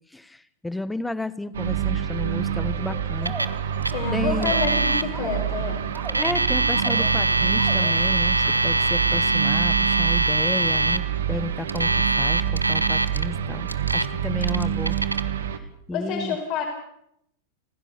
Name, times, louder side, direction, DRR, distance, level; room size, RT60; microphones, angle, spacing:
voice 1, 0.1-3.3 3.6-3.8 4.1-4.5 6.2-15.0 15.4-16.4, left 2 dB, 5° left, 16 dB, 1.2 m, -32 dB
sound 1, 1.5-15.6, right 9 dB, 65° right, 1.8 m, -27 dB
sound 2, 2.2-8.2 8.4-8.7, right 4 dB, 20° right, 4.7 m, -40 dB
Alarm, 3.3-3.6 3.8-3.9 4.4-5.0 6.0-11.0 11.7-13.2 13.7-14.1 14.4-15.2, right 2 dB, 85° right, 0.9 m, -23 dB
voice 2, 3.9-5.8 15.9-16.6, left 6 dB, 40° left, 2 dB, 4.5 m, -28 dB
30.0 x 15.5 x 6.8 m, 0.74 s
figure-of-eight pair, 90°, 0 cm